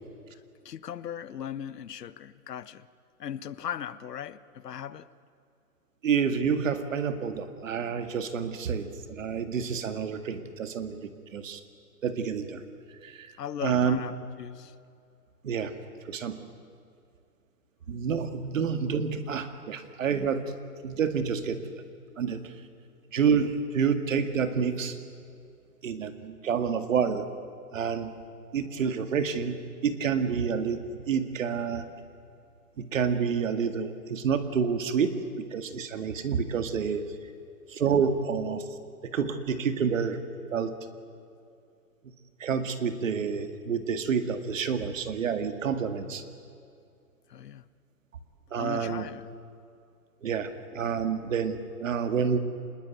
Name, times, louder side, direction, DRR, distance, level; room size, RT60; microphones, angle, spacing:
voice 1, 0.3-2.9 3.2-5.1 13.4-14.7 47.3-47.6 48.6-49.3, left 9 dB, 80° left, 15 dB, 1.1 m, -38 dB
voice 2, 6.0-11.6 12.0-12.6 13.0-13.3 13.6-14.0 15.4-15.7 16.1-16.4 17.9-20.4 20.8-21.8 22.2-22.5 23.1-25.0 25.8-27.3 27.7-28.1 28.5-30.8 31.1-31.8 32.8-35.2 35.5-37.1 37.7-38.7 39.0-40.2 40.5-40.8 42.4-46.2 48.5-49.1 50.2-52.4, right 6 dB, 55° right, 9 dB, 2.1 m, -28 dB
26.0 x 20.5 x 9.3 m, 2.5 s
hypercardioid pair, 170°, 47 cm